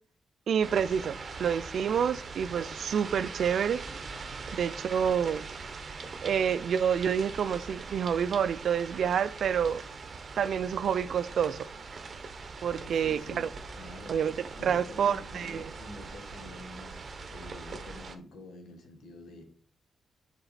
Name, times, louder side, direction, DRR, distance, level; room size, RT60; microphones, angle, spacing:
voice 1, 0.5-3.8 4.5-5.4 6.2-9.8 10.4-11.6 12.6-13.5 14.1-14.3 14.6-15.6, right 8 dB, 65° right, 0.4 m, -28 dB
sound 1, 0.6-18.2, right 4 dB, 40° right, 0.8 m, -42 dB
voice 2, 12.8-13.4 13.8-14.2 14.6-17.0 17.3-19.5, left 2 dB, 80° left, 1.8 m, -47 dB
6.9 x 4.1 x 4.1 m
cardioid pair, 105°, 0 cm